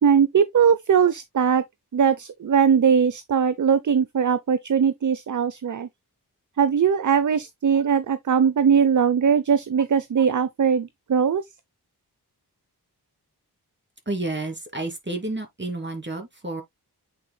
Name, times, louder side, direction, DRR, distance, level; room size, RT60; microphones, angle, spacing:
voice 1, 0.0-1.6 1.9-5.9 6.6-11.4, right 7 dB, 50° right, 0.6 m, -20 dB
voice 2, 14.1-16.6, right 2 dB, 25° right, 2.7 m, -30 dB
8.7 x 5.1 x 2.2 m
wide cardioid pair, 65°, 39 cm